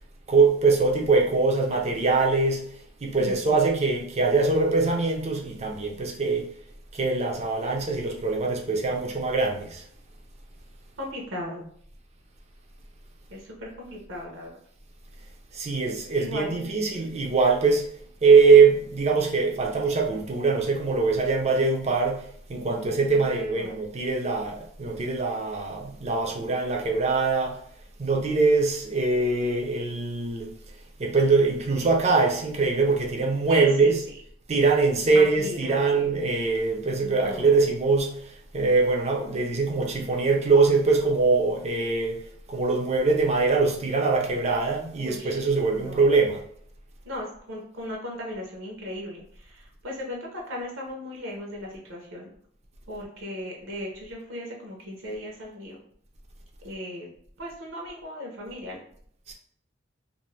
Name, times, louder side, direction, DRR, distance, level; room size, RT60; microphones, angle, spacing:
voice 1, 0.3-2.6 3.0-6.4 6.9-9.8 15.5-17.8 18.2-22.2 22.5-27.6 28.0-30.5 31.0-34.0 34.5-42.2 42.5-46.4 59.3-59.4, right 4 dB, 35° right, 1 dB, 0.5 m, -22 dB
voice 2, 3.2-3.6 11.0-11.7 13.3-14.5 16.2-16.7 23.1-23.8 33.5-33.9 35.1-36.1 37.0-37.7 45.0-46.0 47.0-52.3 52.9-55.8 56.6-57.1 57.4-58.8, equal, 70° right, -1 dB, 0.8 m, -37 dB
2.6 x 2.5 x 3.1 m, 0.63 s
head